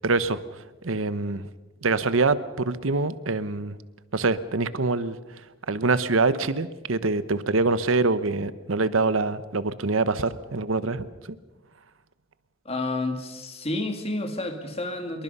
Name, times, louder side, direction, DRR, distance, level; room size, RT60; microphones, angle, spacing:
voice 1, 0.0-0.4 0.8-1.4 1.8-3.7 4.1-5.2 5.7-11.1, right 3 dB, 90° right, 14 dB, 1.0 m, -24 dB
voice 2, 12.6-15.2, left 2 dB, 30° left, 6 dB, 2.3 m, -30 dB
26.0 x 22.5 x 5.5 m, 1.1 s
head